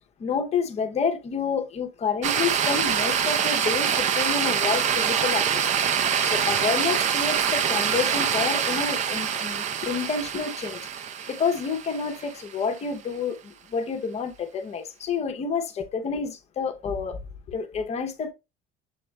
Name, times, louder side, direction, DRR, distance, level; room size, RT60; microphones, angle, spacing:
voice 1, 0.2-5.7 6.2-10.8 11.3-17.2 17.5-18.3, left 5 dB, 30° left, 0.8 m, -29 dB
sound 1, 2.2-12.5, right 8 dB, 35° right, 0.4 m, -25 dB
7.1 x 2.4 x 3.1 m
cardioid pair, 150°, 21 cm